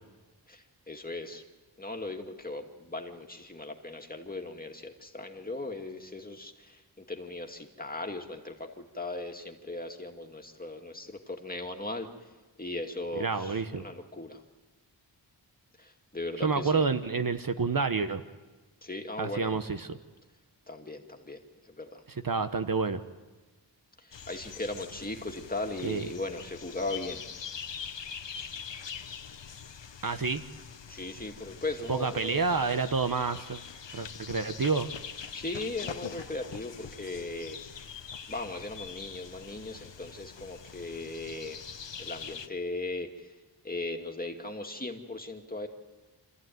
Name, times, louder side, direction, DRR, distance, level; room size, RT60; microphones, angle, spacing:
voice 1, 0.5-1.4 1.8-12.3 12.6-14.4 15.8-16.8 18.8-19.6 20.7-22.0 24.0-27.2 30.9-32.4 35.3-37.6 38.3-41.6 42.0-43.4 43.6-45.7, left 2 dB, 20° left, 3 dB, 2.2 m, -38 dB
voice 2, 13.2-13.8 16.4-18.2 19.2-19.8 22.2-23.0 25.8-26.1 30.0-30.4 31.9-33.6 33.9-34.9, right 4 dB, 50° right, 9 dB, 1.1 m, -28 dB
sound 1, 24.1-42.5, left 7 dB, 80° left, 1.1 m, -43 dB
27.5 x 14.0 x 9.3 m, 1.2 s
wide cardioid pair, 90°, 44 cm